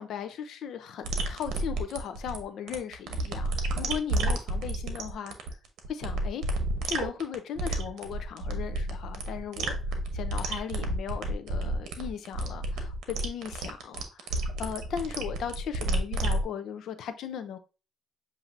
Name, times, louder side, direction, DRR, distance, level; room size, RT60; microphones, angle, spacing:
voice 1, 0.0-5.3 5.9-6.4 6.8-9.8 10.1-17.6, left 8 dB, 75° left, 0.6 m, -37 dB
sound 1, 1.0-16.4, right 2 dB, 85° right, 0.8 m, -31 dB
7.3 x 2.7 x 2.6 m
cardioid pair, 90°, 0 cm